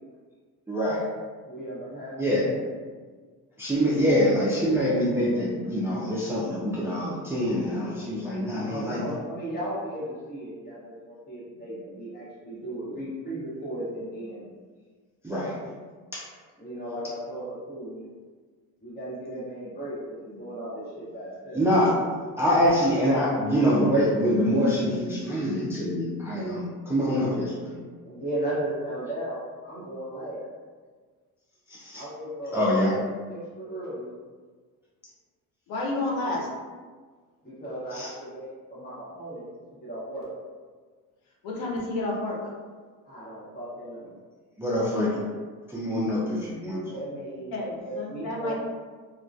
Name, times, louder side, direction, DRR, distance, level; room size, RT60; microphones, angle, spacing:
voice 1, 0.7-1.0 2.2-2.4 3.6-9.0 15.2-15.5 16.1-16.2 21.5-21.9 22.4-27.8 31.7-32.0 32.5-32.9 37.9-38.1 44.6-45.2 45.7-46.8, equal, 5° right, -8 dB, 0.4 m, -25 dB
voice 2, 1.4-2.7 8.5-14.5 16.6-18.1 18.8-21.6 28.0-30.5 31.9-34.1 36.2-36.4 37.4-39.5 39.8-40.3 43.0-44.1 46.9-48.5, right 1 dB, 25° left, -9 dB, 1.1 m, -36 dB
voice 3, 35.7-36.5 41.4-42.4 47.5-48.5, left 2 dB, 85° left, -2 dB, 0.7 m, -30 dB
2.2 x 2.2 x 2.6 m, 1.5 s
cardioid pair, 125°, 35 cm